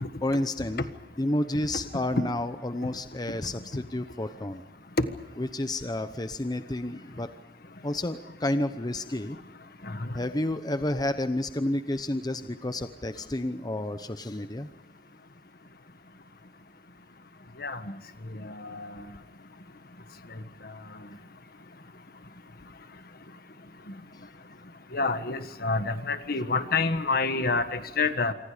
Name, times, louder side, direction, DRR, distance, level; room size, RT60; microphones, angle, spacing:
voice 1, 0.2-0.8 1.2-4.6 5.4-7.3 7.8-9.4 10.1-14.7, left 1 dB, 25° left, 10 dB, 0.9 m, -30 dB
voice 2, 9.8-10.1 17.6-17.9 18.3-19.0 24.9-28.3, left 3 dB, 60° left, 10 dB, 1.5 m, -28 dB
27.5 x 24.5 x 5.1 m, 1.1 s
head